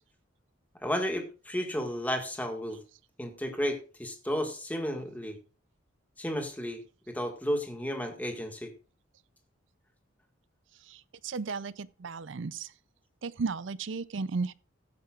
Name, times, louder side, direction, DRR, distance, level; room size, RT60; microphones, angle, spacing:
voice 1, 0.8-2.8 3.2-5.4 6.2-6.8 7.1-8.7, equal, 10° left, 1.7 m, -33 dB
voice 2, 10.8-12.7 13.2-14.5, right 4 dB, 70° right, 0.5 m, -35 dB
15.5 x 9.5 x 2.4 m
head